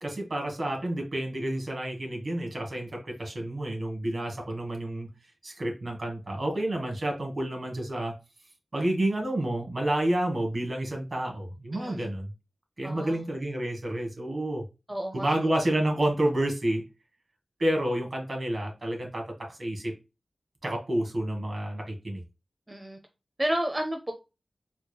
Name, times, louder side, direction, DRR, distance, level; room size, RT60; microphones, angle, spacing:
voice 1, 0.0-5.1 5.4-8.1 8.7-12.3 12.8-14.6 15.1-16.8 17.6-19.9 20.6-22.2, right 1 dB, 60° right, 1.5 m, -29 dB
voice 2, 11.7-12.1 12.8-13.2 14.9-15.3 22.7-23.0 23.4-24.1, right 1 dB, 20° right, 0.6 m, -31 dB
4.2 x 3.2 x 2.2 m
wide cardioid pair, 55°, 0 cm